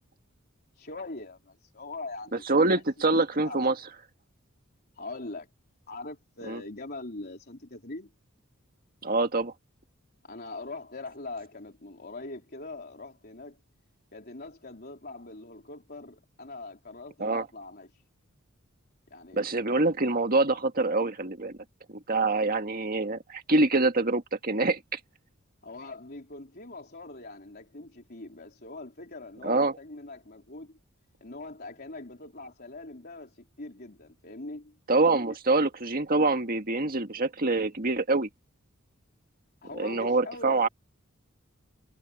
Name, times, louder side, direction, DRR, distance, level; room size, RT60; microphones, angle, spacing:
voice 1, 0.8-2.5 2.7-2.8 3.4-3.8 5.0-5.5 5.9-8.1 10.2-13.6 14.1-17.9 19.1-19.6 25.6-30.8 31.2-34.8 39.6-40.7, left 2 dB, 50° left, 3.8 m, -42 dB
voice 2, 2.5-3.7 6.5-6.6 9.0-9.5 17.2-17.5 19.3-21.6 21.9-25.0 29.4-29.8 34.9-38.3 39.8-40.7, right 2 dB, 45° right, 1.9 m, -25 dB
head